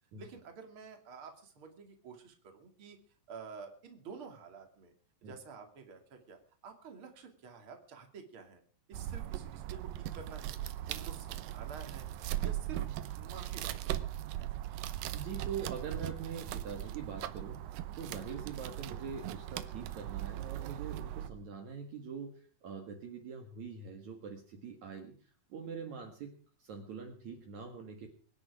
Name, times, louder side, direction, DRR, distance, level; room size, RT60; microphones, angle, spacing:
voice 1, 0.2-3.0 3.3-4.9 5.2-8.6 8.9-10.6 10.9-12.1 12.4-12.9 13.2-14.1, right 5 dB, 40° right, 4 dB, 3.2 m, -50 dB
sound 1, 8.9-21.3, right 13 dB, 85° right, 2.6 m, -39 dB
voice 2, 15.1-26.3 26.6-28.1, right 6 dB, 60° right, 2 dB, 2.9 m, -44 dB
24.0 x 10.0 x 4.9 m, 0.41 s
omnidirectional pair, 3.9 m